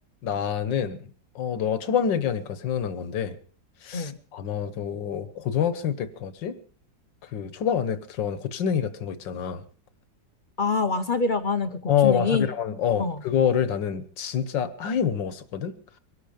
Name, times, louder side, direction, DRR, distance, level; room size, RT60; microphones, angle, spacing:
voice 1, 0.2-1.1 1.4-3.4 3.8-6.6 7.2-9.6 11.9-15.7, left 8 dB, 75° left, 14 dB, 1.8 m, -27 dB
voice 2, 10.6-12.5 13.0-13.2, left 4 dB, 50° left, 9 dB, 0.6 m, -25 dB
23.0 x 11.5 x 5.1 m, 0.40 s
omnidirectional pair, 2.1 m